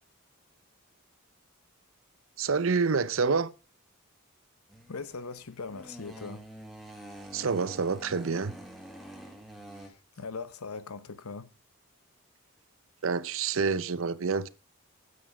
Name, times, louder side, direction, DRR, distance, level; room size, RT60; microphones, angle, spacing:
voice 1, 2.4-3.5 7.3-8.5 13.0-14.5, right 5 dB, 65° right, 0.6 m, -27 dB
sound 1, 4.7-9.9, equal, ahead, 1.6 m, -47 dB
voice 2, 4.9-6.5 9.7-11.5, left 4 dB, 80° left, 0.9 m, -40 dB
9.5 x 8.5 x 4.8 m
head